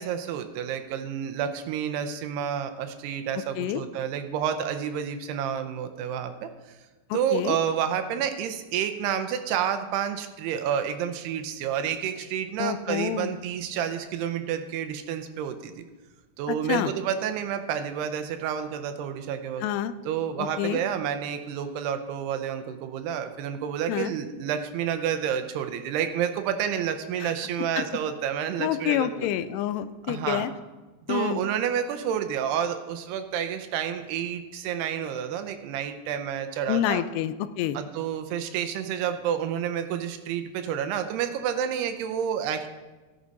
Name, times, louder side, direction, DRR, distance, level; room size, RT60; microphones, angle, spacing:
voice 1, 0.0-6.8 7.1-15.8 16.4-19.6 20.1-29.3 30.1-30.5 31.1-37.0 37.7-42.7, right 8 dB, 80° right, 8 dB, 2.7 m, -29 dB
voice 2, 7.1-7.6 12.6-13.3 16.5-16.9 19.6-19.9 20.4-20.8 23.9-24.1 27.2-27.3 28.6-30.5 31.1-31.4 36.7-37.8, left 11 dB, 90° left, 13 dB, 2.7 m, -28 dB
14.0 x 11.5 x 4.1 m, 1.2 s
omnidirectional pair, 4.7 m